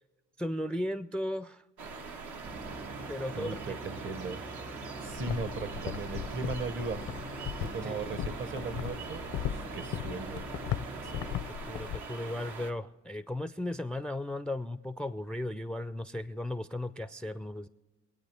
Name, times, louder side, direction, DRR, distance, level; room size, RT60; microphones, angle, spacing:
voice 1, 0.4-1.6 3.1-3.8 7.8-8.1 11.0-17.7, left 1 dB, 5° left, 13 dB, 0.4 m, -36 dB
sound 1, 1.8-12.7, right 4 dB, 80° right, 1.5 m, -43 dB
Boat Water vehicle / Engine, 2.4-11.4, right 2 dB, 60° right, 2.1 m, -44 dB
voice 2, 3.3-4.4 5.0-7.0 7.6-10.4, right 4 dB, 40° right, 13 dB, 0.9 m, -37 dB
sound 2, 5.1-12.0, left 11 dB, 80° left, 0.6 m, -38 dB
25.5 x 8.7 x 3.4 m, 1.3 s
cardioid pair, 90°, 30 cm